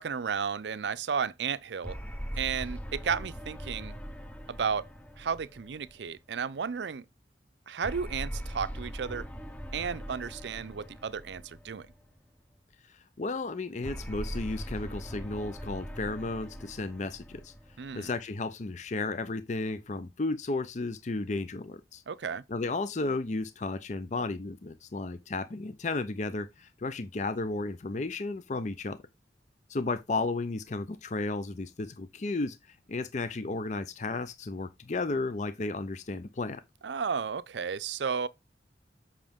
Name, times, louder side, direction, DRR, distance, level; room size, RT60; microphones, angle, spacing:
voice 1, 0.0-2.0 2.4-4.0 4.5-4.9 5.2-7.1 7.7-9.3 9.7-11.9 17.8-18.1 22.1-22.4 36.8-38.3, right 6 dB, 75° right, 0.5 m, -33 dB
sound 1, 1.8-6.4 7.8-12.2 13.8-18.4, equal, 10° left, 0.8 m, -41 dB
voice 2, 12.9-17.5 17.9-22.0 22.5-29.0 29.7-36.6, left 3 dB, 40° left, 0.5 m, -33 dB
7.5 x 5.8 x 3.5 m
head